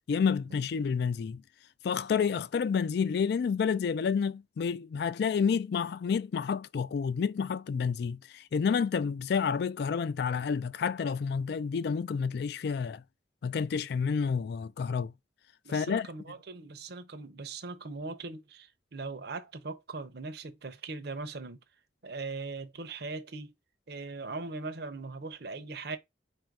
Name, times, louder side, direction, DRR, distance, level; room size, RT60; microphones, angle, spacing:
voice 1, 0.1-1.4 1.8-13.0 13.4-15.1 15.7-16.1, left 6 dB, 60° left, 0.3 m, -29 dB
voice 2, 15.6-21.6 22.0-23.5 23.9-26.0, right 3 dB, 60° right, 0.7 m, -40 dB
4.2 x 2.6 x 4.6 m
head